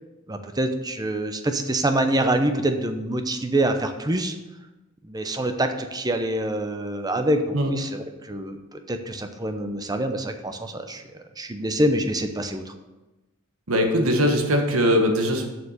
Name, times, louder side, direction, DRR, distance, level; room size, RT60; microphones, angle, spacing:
voice 1, 0.3-4.3 5.0-11.0 11.4-12.7, right 1 dB, 20° right, 7 dB, 0.7 m, -25 dB
voice 2, 13.7-15.5, equal, 80° right, 4 dB, 1.5 m, -21 dB
7.0 x 6.9 x 6.6 m, 1.1 s
head